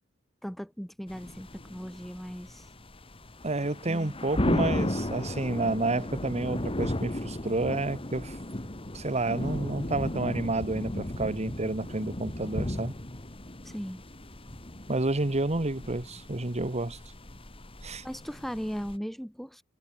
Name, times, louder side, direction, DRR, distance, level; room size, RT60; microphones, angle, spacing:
voice 1, 0.4-2.7 3.9-4.1 13.6-14.0 18.0-19.6, equal, ahead, 2.4 m, -37 dB
sound 1, 1.1-19.0, left 1 dB, 25° left, 2.2 m, -35 dB
voice 2, 3.4-8.4 8.9-13.0 14.9-17.0 17.8-18.0, right 2 dB, 30° right, 1.4 m, -30 dB
head